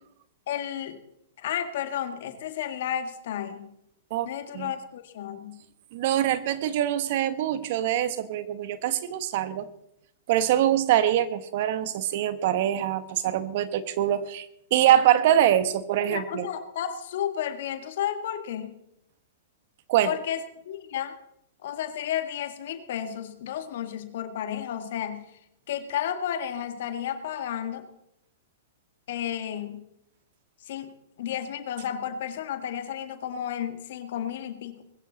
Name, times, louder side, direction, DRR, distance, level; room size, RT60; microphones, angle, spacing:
voice 1, 0.5-1.0 1.4-3.7 4.2-5.6 16.0-18.8 20.0-21.2 21.6-25.3 25.7-27.9 29.1-29.9 30.7-30.9 31.2-34.8, left 10 dB, 65° left, 8 dB, 1.8 m, -32 dB
voice 2, 5.9-9.7 10.3-14.5 14.7-16.5 19.9-20.1, right 11 dB, 55° right, 13 dB, 1.2 m, -24 dB
20.0 x 15.0 x 4.1 m, 0.77 s
hypercardioid pair, 120°, 0 cm